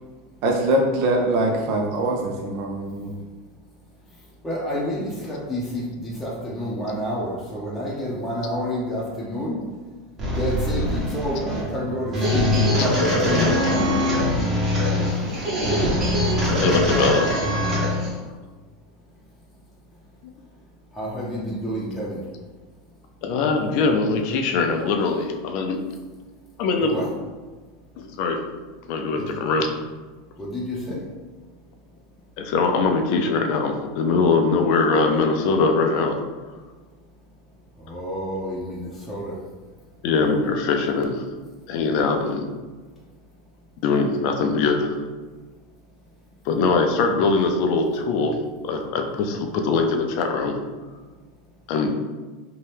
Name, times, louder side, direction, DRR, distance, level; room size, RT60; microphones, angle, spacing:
voice 1, 0.4-3.2 13.7-14.1 14.9-15.3, right 1 dB, 60° right, 0 dB, 0.4 m, -24 dB
voice 2, 4.1-9.6 10.3-14.0 20.9-22.3 26.8-27.1 29.2-29.3 30.4-31.0 37.8-39.4, equal, 5° left, -8 dB, 0.7 m, -29 dB
sound 1, 10.2-18.1, left 1 dB, 30° right, 1.1 m, -22 dB
voice 3, 16.6-17.5 23.2-25.8 26.6-27.0 28.0-28.4 28.9-29.7 32.4-36.1 40.0-41.2 41.7-42.4 43.8-45.0 46.5-48.3 48.6-50.5 51.7-51.9, left 4 dB, 60° left, 3 dB, 0.4 m, -22 dB
2.8 x 2.2 x 3.3 m, 1.3 s
supercardioid pair, 120°, 0 cm